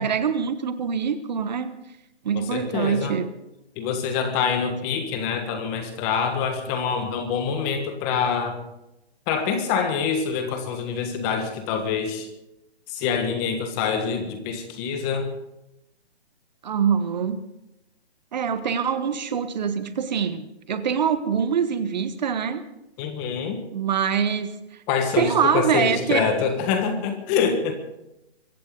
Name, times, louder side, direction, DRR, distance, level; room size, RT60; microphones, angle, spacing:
voice 1, 0.0-1.7 2.2-3.3 16.6-17.4 18.3-22.6 23.7-24.5 25.2-26.3, right 7 dB, 40° right, 11 dB, 1.2 m, -24 dB
voice 2, 2.3-3.2 3.8-8.6 9.3-12.3 12.9-15.3 23.0-23.6 24.9-27.8, left 6 dB, 15° left, 7 dB, 1.4 m, -25 dB
24.5 x 15.0 x 3.9 m, 0.89 s
hypercardioid pair, 160°, 32 cm